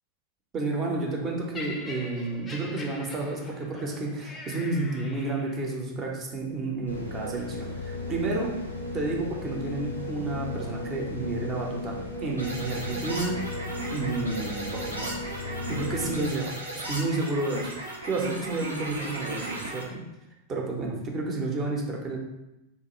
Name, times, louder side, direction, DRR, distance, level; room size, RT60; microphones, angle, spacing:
voice 1, 0.5-8.6 8.9-13.4 13.9-20.0 20.5-22.2, right 3 dB, 25° right, -1 dB, 0.6 m, -31 dB
Laughter, 1.5-5.8 6.6-6.8, left 3 dB, 20° left, 0.4 m, -43 dB
sound 1, 6.9-16.2, left 2 dB, 80° left, 0.4 m, -36 dB
sound 2, 12.4-19.8, right 1 dB, 85° right, 0.5 m, -36 dB
2.9 x 2.1 x 3.0 m, 0.93 s
figure-of-eight pair, 90°, 0 cm